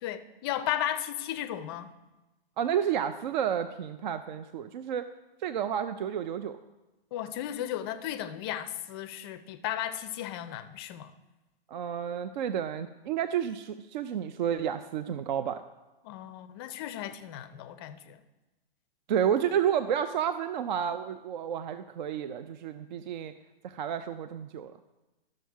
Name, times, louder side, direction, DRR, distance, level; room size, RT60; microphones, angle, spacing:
voice 1, 0.0-1.9 7.1-11.1 16.0-18.2, left 11 dB, 25° left, 0.5 m, -35 dB
voice 2, 2.6-5.1 5.4-6.6 11.7-15.6 19.1-23.3 23.6-24.8, right 9 dB, 50° right, 0.5 m, -30 dB
13.0 x 6.4 x 4.6 m
hypercardioid pair, 140°, 30 cm